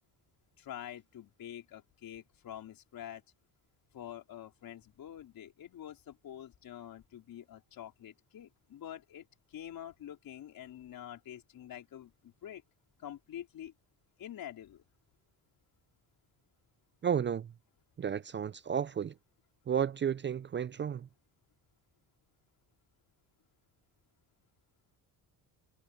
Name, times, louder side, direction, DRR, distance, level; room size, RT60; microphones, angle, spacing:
voice 1, 0.6-3.2 3.9-12.6 13.0-13.7 14.2-14.8, left 11 dB, 65° left, 4.4 m, -47 dB
voice 2, 17.0-17.5 18.0-19.1 19.7-21.1, right 8 dB, 30° right, 0.5 m, -32 dB
cardioid pair, 95°, 38 cm